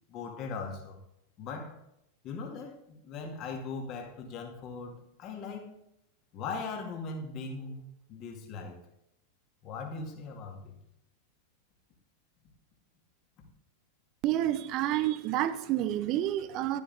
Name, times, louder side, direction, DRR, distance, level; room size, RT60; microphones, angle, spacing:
voice 1, 0.1-1.0 1.4-1.8 2.2-5.7 6.3-8.8 9.6-10.8 13.4-13.5, left 4 dB, 35° left, 3 dB, 2.2 m, -39 dB
voice 2, 14.2-16.8, right 13 dB, 40° right, 13 dB, 0.7 m, -29 dB
12.0 x 9.3 x 3.5 m, 0.79 s
figure-of-eight pair, 90°, 0 cm